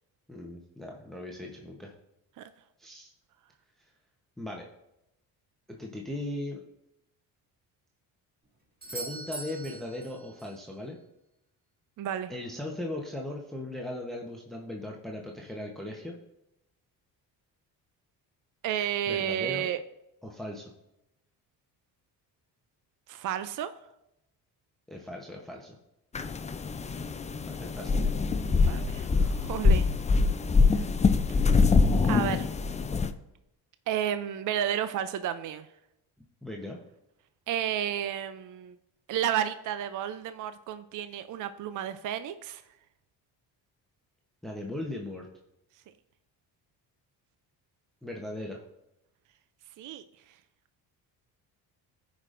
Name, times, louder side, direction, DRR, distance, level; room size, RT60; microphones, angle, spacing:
voice 1, 0.3-1.9 2.8-3.1 4.4-4.7 5.7-6.6 8.9-11.0 12.3-16.2 19.1-19.7 20.2-20.6 24.9-25.8 27.5-28.1 36.4-36.8 44.4-45.3 48.0-48.6, left 1 dB, ahead, 0 dB, 0.9 m, -38 dB
Doorbell, 8.8-10.7 14.7-14.8, right 2 dB, 20° right, 1.8 m, -42 dB
voice 2, 12.0-12.3 18.6-19.8 23.1-23.7 28.5-29.9 30.7-30.9 32.1-32.5 33.9-35.7 37.5-38.8 39.1-42.6 49.8-50.0, right 10 dB, 50° right, 11 dB, 0.5 m, -32 dB
sound 1, 26.1-33.1, left 4 dB, 20° left, 0.4 m, -24 dB
15.0 x 5.1 x 2.5 m, 0.87 s
cardioid pair, 85°, 41 cm